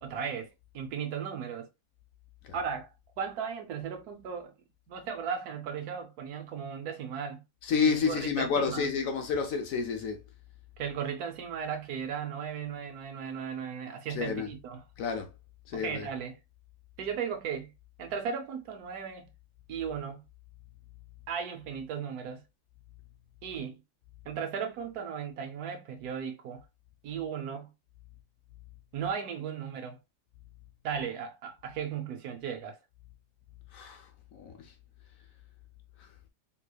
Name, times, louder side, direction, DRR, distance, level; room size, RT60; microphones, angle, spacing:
voice 1, 0.0-1.7 2.5-2.9 3.2-4.5 4.9-7.4 7.8-8.9 10.8-14.8 15.7-16.4 17.0-17.7 18.0-19.3 19.7-20.2 21.3-22.4 23.4-23.8 24.2-26.6 27.0-27.7 28.9-30.0 30.8-32.8, right 7 dB, 70° right, 1.2 m, -36 dB
voice 2, 7.6-10.2 14.1-14.5 15.0-15.3 15.7-16.1 33.7-34.1 34.3-34.7, left 5 dB, 65° left, 0.9 m, -30 dB
3.9 x 3.1 x 2.2 m
omnidirectional pair, 1.7 m